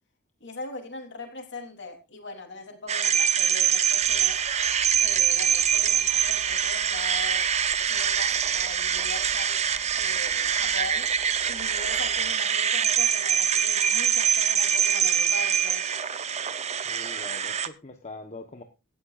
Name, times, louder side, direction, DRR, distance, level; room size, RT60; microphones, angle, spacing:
voice 1, 0.4-4.4 5.0-7.5 7.9-9.6 9.9-11.1 11.4-15.8, left 3 dB, 50° left, 3.5 m, -40 dB
sound 1, 2.9-17.7, right 8 dB, 30° right, 0.7 m, -24 dB
sound 2, 4.0-12.6, right 4 dB, 80° right, 3.9 m, -47 dB
voice 2, 16.8-18.6, left 2 dB, 30° left, 1.1 m, -42 dB
17.5 x 13.0 x 2.5 m
head